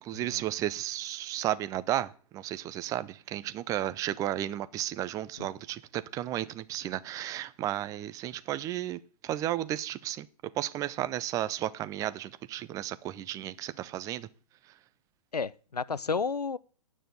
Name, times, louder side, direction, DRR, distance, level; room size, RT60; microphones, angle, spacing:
voice 1, 0.0-10.3 10.5-14.3, right 13 dB, 15° right, 0.5 m, -33 dB
voice 2, 15.3-16.6, left 5 dB, 90° left, 0.5 m, -32 dB
9.3 x 6.3 x 8.0 m
figure-of-eight pair, 120°, 20 cm